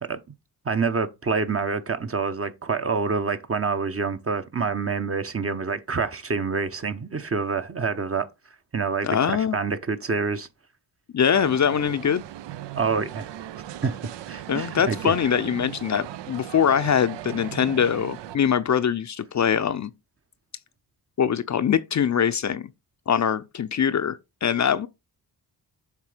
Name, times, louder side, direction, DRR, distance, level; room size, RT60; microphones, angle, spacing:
voice 1, 0.6-8.3 8.7-10.5 12.7-13.3 13.8-15.2, right 5 dB, 30° right, 0.9 m, -27 dB
voice 2, 9.0-9.6 11.1-12.2 14.5-19.9 21.2-22.7 23.1-24.9, left 8 dB, 40° left, 0.6 m, -23 dB
sound 1, 11.3-18.4, right 12 dB, 75° right, 0.6 m, -38 dB
7.4 x 3.4 x 4.9 m
supercardioid pair, 55°, 43 cm